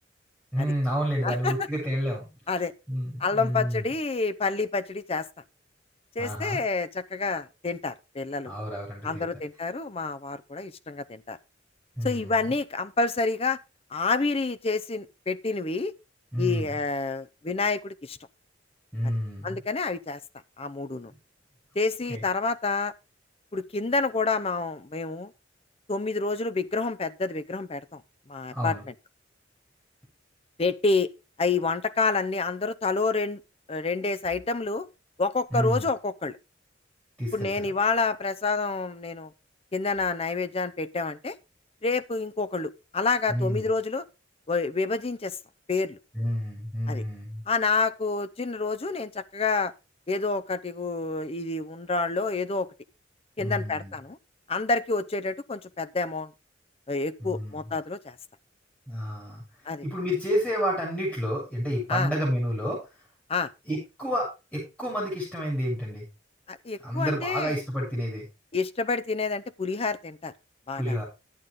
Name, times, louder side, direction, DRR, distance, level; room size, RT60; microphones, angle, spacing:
voice 1, 0.5-2.6 2.9-3.9 6.2-6.6 8.4-9.2 12.0-12.5 16.3-16.7 18.9-19.6 22.1-22.2 28.5-28.8 35.5-35.9 37.2-37.7 43.3-43.7 46.1-47.4 53.4-53.9 57.2-57.7 58.9-59.4 59.8-62.8 63.6-66.1 66.8-68.2 70.7-71.0, equal, 5° left, 6.8 m, -30 dB
voice 2, 1.2-1.7 2.5-2.7 3.2-5.3 6.2-8.6 9.0-11.4 12.0-13.6 13.9-15.9 16.4-18.2 19.4-20.2 20.6-21.1 21.8-22.9 23.5-25.3 25.9-28.0 28.3-28.8 30.6-31.1 31.4-33.4 33.7-34.9 35.2-36.4 37.3-39.3 39.7-41.4 41.8-44.0 44.5-45.4 45.7-46.0 46.9-47.0 47.5-49.7 50.1-52.7 53.4-54.2 54.5-56.3 56.9-58.2 59.7-59.9 61.9-62.1 63.3-63.5 66.5-67.5 68.5-70.3 70.7-71.0, left 3 dB, 30° left, 0.6 m, -28 dB
11.0 x 9.2 x 3.8 m
head